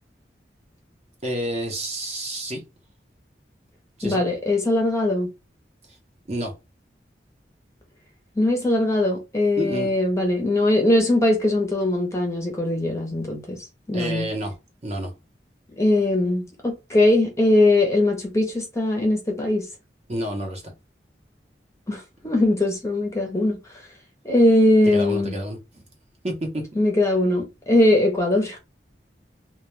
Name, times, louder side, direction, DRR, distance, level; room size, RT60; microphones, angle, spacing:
voice 1, 1.2-2.6 4.0-4.2 6.3-6.5 9.6-9.9 13.9-14.5 14.8-15.1 20.1-20.7 24.9-25.8 26.2-26.6, right 1 dB, 35° right, 0.7 m, -29 dB
voice 2, 4.0-5.3 8.4-14.3 15.8-19.7 21.9-23.6 24.2-25.4 26.8-28.6, left 1 dB, 15° left, 0.6 m, -21 dB
2.2 x 2.1 x 3.0 m
head